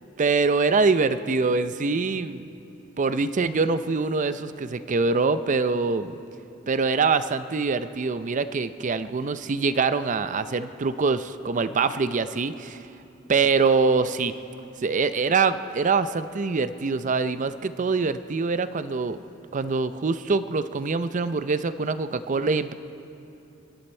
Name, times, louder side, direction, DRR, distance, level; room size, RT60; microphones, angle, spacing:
voice 1, 0.2-2.4 3.0-6.1 6.7-12.8 13.3-14.3 14.8-19.2 19.5-22.7, right 4 dB, 40° right, 13 dB, 0.5 m, -24 dB
25.5 x 12.5 x 4.4 m, 2.8 s
head